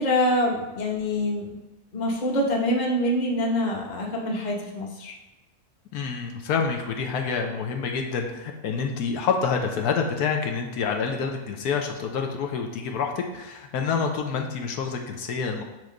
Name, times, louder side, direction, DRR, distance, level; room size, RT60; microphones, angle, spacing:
voice 1, 0.0-1.5 1.9-5.1, left 1 dB, 30° left, -1 dB, 1.0 m, -25 dB
voice 2, 5.9-15.6, left 5 dB, 80° left, 3 dB, 1.3 m, -27 dB
7.6 x 3.2 x 5.1 m, 1.0 s
omnidirectional pair, 1.6 m